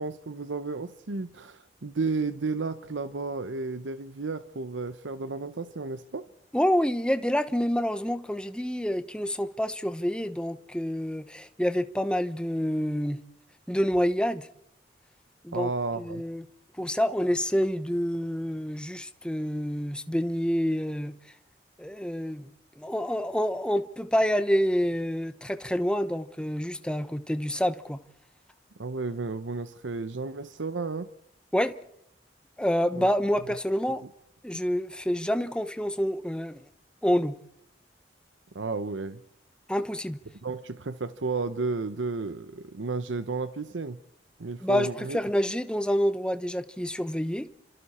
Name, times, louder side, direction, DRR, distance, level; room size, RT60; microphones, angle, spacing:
voice 1, 0.0-6.3 15.5-16.2 28.8-31.1 32.9-33.1 38.5-39.2 40.4-44.0 44.4-45.2, right 3 dB, 90° right, 0.8 m, -32 dB
voice 2, 6.5-13.2 13.7-14.5 15.4-15.7 16.0-16.4 16.8-21.1 21.8-22.5 22.8-28.0 31.5-31.8 32.6-34.0 34.4-36.6 37.0-37.3 39.7-40.2 44.6-47.5, equal, 5° left, 0.9 m, -27 dB
29.5 x 26.5 x 4.3 m
head